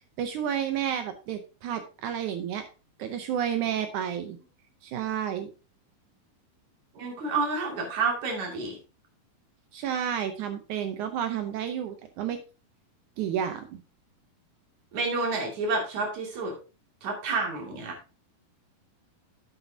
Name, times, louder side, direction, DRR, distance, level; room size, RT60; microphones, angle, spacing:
voice 1, 0.2-2.7 3.0-4.4 4.8-5.5 9.7-12.4 13.2-13.8, right 9 dB, 80° right, 8 dB, 1.8 m, -31 dB
voice 2, 7.0-8.8 14.9-16.5 17.0-18.0, right 3 dB, 55° right, 1 dB, 3.5 m, -29 dB
10.5 x 8.2 x 2.7 m, 0.32 s
omnidirectional pair, 4.3 m